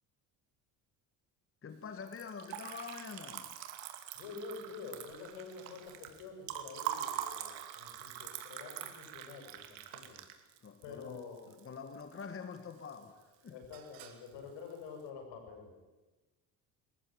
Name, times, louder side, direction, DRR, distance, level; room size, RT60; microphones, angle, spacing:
voice 1, 1.6-3.6 10.6-13.6, left 6 dB, 30° left, 7 dB, 1.7 m, -46 dB
Liquid, 2.0-12.2 12.6-13.2 13.5-14.3, right 11 dB, 85° right, 2.6 m, -44 dB
voice 2, 4.1-10.2 10.8-11.4 13.5-15.7, left 5 dB, 75° left, 3 dB, 8.0 m, -48 dB
23.0 x 14.5 x 9.4 m, 1.2 s
cardioid pair, 105°, 43 cm